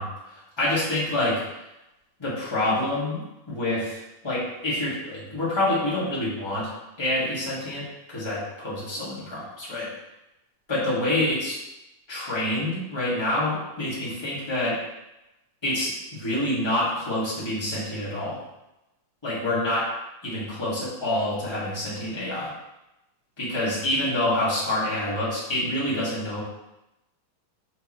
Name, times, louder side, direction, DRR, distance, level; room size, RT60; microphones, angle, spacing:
voice 1, 0.0-1.4 2.2-6.7 7.0-9.9 10.7-11.6 12.1-14.8 15.6-18.4 19.2-19.9 20.2-22.5 23.4-26.4, left 1 dB, 10° left, -9 dB, 1.6 m, -27 dB
5.9 x 5.6 x 3.2 m, 0.93 s
omnidirectional pair, 3.6 m